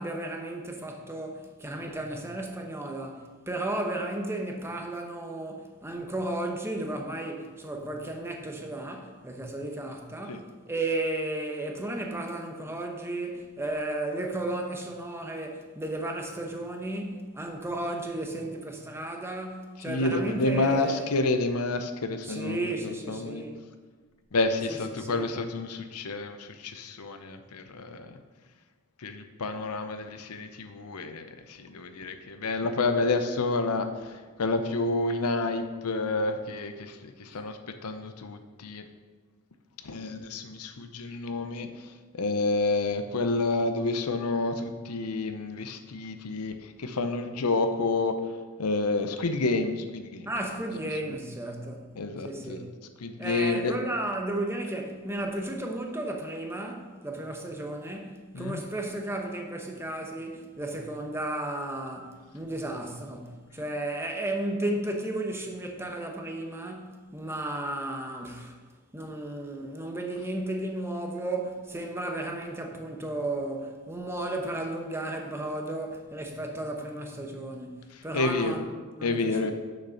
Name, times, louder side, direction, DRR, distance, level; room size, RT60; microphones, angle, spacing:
voice 1, 0.0-21.1 22.2-23.6 24.7-25.3 50.2-51.9 52.2-52.7 53.2-68.6 68.9-78.7 79.0-79.5, right 1 dB, 10° right, 0.9 m, -34 dB
voice 2, 19.9-23.4 24.3-28.2 29.0-34.1 34.4-38.9 39.8-48.2 48.6-50.3 52.0-52.7 53.0-53.7 58.3-58.6 78.1-78.6 79.0-79.5, left 3 dB, 85° left, 0.7 m, -29 dB
6.5 x 6.5 x 5.7 m
head